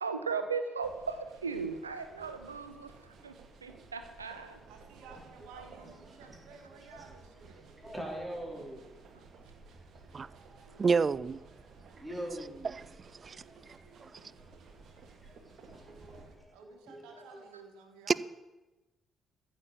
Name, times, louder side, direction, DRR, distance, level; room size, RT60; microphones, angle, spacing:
voice 1, 0.0-2.9 3.2-4.6 5.5-5.7 10.7-10.8, right 5 dB, 85° right, 0.9 m, -37 dB
sound 1, 0.8-16.4, right 4 dB, 55° right, 2.0 m, -55 dB
voice 2, 4.4-7.7 14.3-14.4 16.5-18.1, right 5 dB, 70° right, 1.9 m, -54 dB
voice 3, 5.0-5.5 5.8-8.9 9.3-9.4 9.7-10.9 11.6-12.8 13.2-17.5, right 1 dB, 5° right, 4.2 m, -47 dB
voice 4, 10.8-11.4 13.1-13.4 14.0-14.1 18.1-18.2, right 5 dB, 40° right, 0.4 m, -27 dB
14.5 x 7.1 x 7.2 m
figure-of-eight pair, 45°, 0 cm